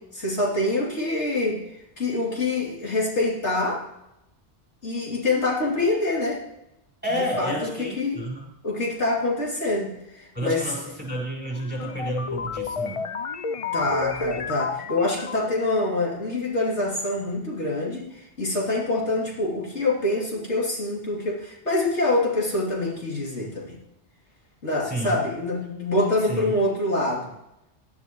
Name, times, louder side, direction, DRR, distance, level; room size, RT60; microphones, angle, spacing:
voice 1, 0.1-3.8 4.8-6.4 7.2-8.3 8.6-10.8 13.7-23.7 24.6-27.3, left 2 dB, 85° left, -4 dB, 3.3 m, -25 dB
voice 2, 7.0-8.5 10.3-13.1 24.8-25.2 26.3-26.5, equal, 10° right, -2 dB, 5.0 m, -30 dB
sound 1, 11.5-15.7, left 5 dB, 45° left, 0.4 m, -31 dB
18.5 x 11.5 x 3.1 m, 0.87 s
omnidirectional pair, 1.1 m